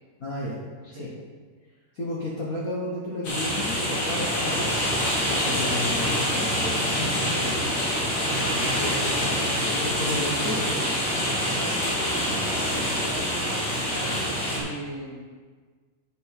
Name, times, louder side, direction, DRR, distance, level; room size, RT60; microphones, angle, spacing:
voice 1, 0.2-0.6 0.9-1.1 1.9-7.5 8.7-8.9 9.7-10.7, left 1 dB, 70° left, -5 dB, 0.8 m, -32 dB
sound 1, 3.2-14.6, equal, 40° left, 2.6 m, -26 dB
voice 2, 8.2-9.7 11.1-15.2, right 2 dB, 70° right, -7 dB, 0.7 m, -38 dB
8.6 x 7.6 x 4.7 m, 1.5 s
omnidirectional pair, 3.9 m